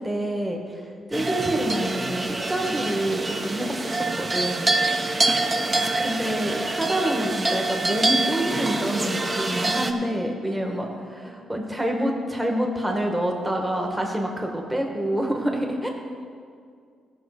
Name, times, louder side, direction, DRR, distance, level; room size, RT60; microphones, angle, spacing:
voice 1, 0.0-4.7 5.7-15.9, right 1 dB, 10° right, 1 dB, 1.5 m, -27 dB
sound 1, 1.1-9.9, right 2 dB, 25° right, 0.8 m, -26 dB
voice 2, 4.8-5.9 10.4-11.5, right 2 dB, 75° right, 1 dB, 1.2 m, -47 dB
15.5 x 5.8 x 4.9 m, 2.2 s
cardioid pair, 100°, 0 cm